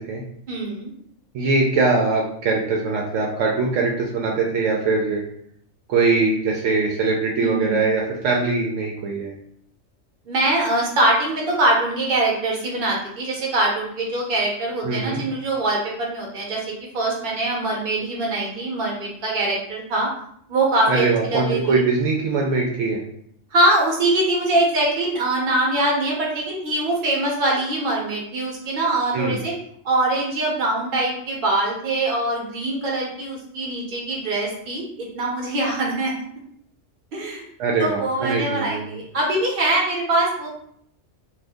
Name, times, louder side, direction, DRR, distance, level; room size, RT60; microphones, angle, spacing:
voice 1, 0.5-0.9 7.4-7.9 10.3-16.6 16.9-20.1 20.5-21.8 23.5-29.5 29.8-36.1 37.1-37.5 37.8-40.5, right 2 dB, 45° right, -2 dB, 0.9 m, -23 dB
voice 2, 1.3-5.2 5.9-9.3 14.8-15.2 20.9-23.0 29.1-29.4 37.6-38.8, right 3 dB, 75° right, -2 dB, 0.9 m, -22 dB
2.6 x 2.4 x 3.4 m, 0.67 s
omnidirectional pair, 1.3 m